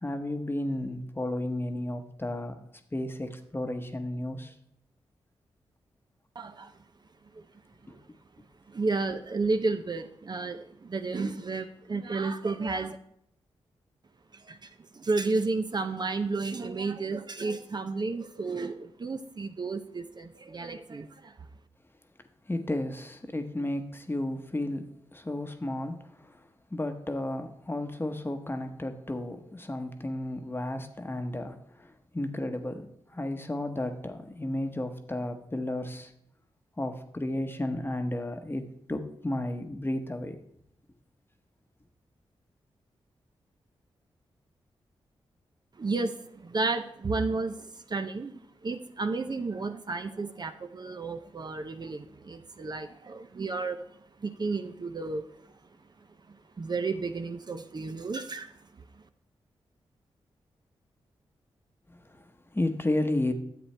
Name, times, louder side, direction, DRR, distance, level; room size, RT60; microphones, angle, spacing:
voice 1, 0.0-2.6 2.9-4.5 7.9-8.0 22.5-26.4 26.7-36.1 36.8-40.4 61.9-63.3, left 1 dB, 20° left, 7 dB, 1.0 m, -33 dB
voice 2, 6.4-6.7 7.3-7.4 8.7-13.0 14.3-21.3 45.8-53.8 54.2-55.3 56.3-58.5, right 3 dB, 40° right, 8 dB, 0.6 m, -32 dB
10.0 x 7.7 x 3.3 m, 0.74 s
cardioid pair, 45°, 11 cm